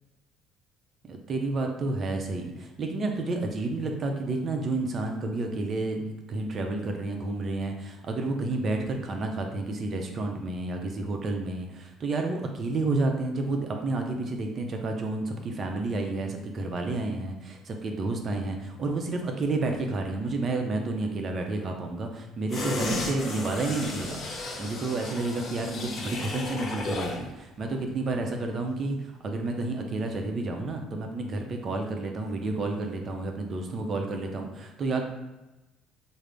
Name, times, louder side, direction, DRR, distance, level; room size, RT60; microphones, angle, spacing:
voice 1, 1.1-24.2 24.6-35.0, right 2 dB, 45° right, 3 dB, 0.6 m, -30 dB
sound 1, 22.5-27.3 27.6-27.7, left 2 dB, 45° left, 0.8 m, -34 dB
3.7 x 2.1 x 3.4 m, 1.0 s
supercardioid pair, 70°, 0 cm